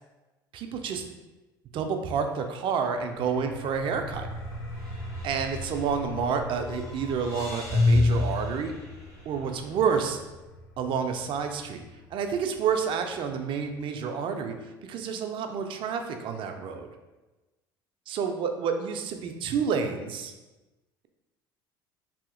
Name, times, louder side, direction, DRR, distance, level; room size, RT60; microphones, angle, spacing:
voice 1, 0.5-1.0 1.7-4.3 5.2-8.7 9.3-10.2 10.8-11.8 12.1-14.6 14.8-16.9 18.1-20.3, right 6 dB, 50° right, 6 dB, 0.4 m, -29 dB
sound 1, 2.1-2.5 2.8-2.9 4.8-6.2 6.6-9.6, left 3 dB, 60° left, 1.2 m, -28 dB
sound 2, 2.9-14.4, equal, 90° left, 0.5 m, -42 dB
2.7 x 2.7 x 2.5 m, 1.1 s
hypercardioid pair, 65°, 11 cm